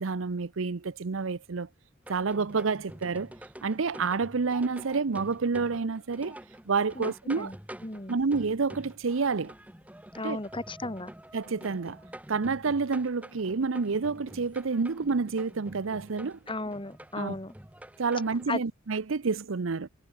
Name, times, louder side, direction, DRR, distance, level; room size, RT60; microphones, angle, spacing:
voice 1, 0.0-1.7 2.1-3.3 3.6-6.4 6.7-7.5 8.1-9.5 10.2-10.4 11.3-12.0 12.3-16.4 17.2-17.4 18.0-19.9, right 4 dB, 75° right, 0.7 m, -29 dB
sound 1, 2.0-18.5, right 1 dB, 5° right, 1.6 m, -47 dB
voice 2, 7.0-7.6 7.8-8.2 10.1-11.1 16.5-17.5 18.5-18.6, left 2 dB, 25° left, 2.4 m, -35 dB
head